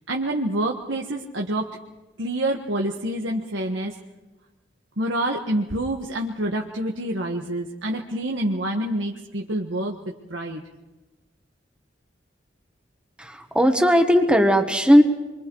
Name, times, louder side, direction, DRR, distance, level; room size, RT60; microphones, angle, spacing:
voice 1, 0.1-1.7 2.2-3.9 5.0-10.0 10.3-10.6, right 1 dB, 85° right, 1 dB, 1.6 m, -27 dB
voice 2, 13.2-15.0, equal, 5° right, 5 dB, 1.3 m, -17 dB
27.0 x 24.5 x 4.8 m, 1.1 s
head